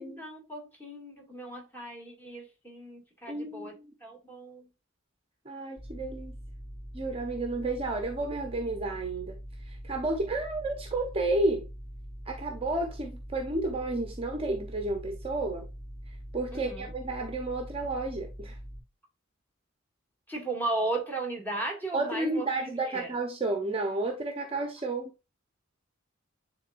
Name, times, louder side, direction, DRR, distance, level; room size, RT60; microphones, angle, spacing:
voice 1, 0.0-4.7 16.5-16.9 20.3-23.1, right 2 dB, 10° left, 2.3 m, -36 dB
voice 2, 3.3-3.9 5.5-6.3 6.9-9.4 9.7-11.6 12.3-15.7 16.3-18.5 21.9-25.1, right 2 dB, 30° right, 0.8 m, -31 dB
sound 1, 5.8-18.8, equal, 25° left, 4.3 m, -43 dB
9.8 x 3.8 x 2.6 m
head